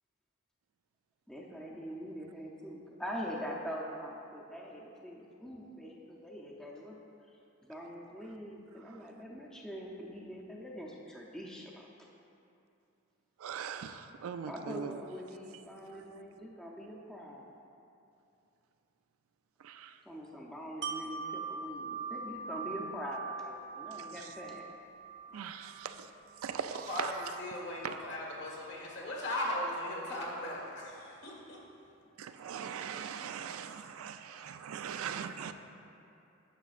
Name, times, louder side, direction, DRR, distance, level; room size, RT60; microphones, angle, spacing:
voice 1, 1.3-7.0 7.3-11.9 14.5-17.5 20.1-24.7, equal, 5° left, 0.5 m, -43 dB
voice 2, 13.4-15.0 15.9-16.0 19.6-20.0 23.9-24.3 25.3-26.1 26.4-27.1 27.8-28.0 32.2-35.5, right 7 dB, 85° right, 0.3 m, -41 dB
Wind chime, 20.8-26.6 27.0-27.1, right 4 dB, 60° right, 0.8 m, -42 dB
voice 3, 26.9-31.7, left 1 dB, 60° left, 1.5 m, -38 dB
10.0 x 7.0 x 2.4 m
head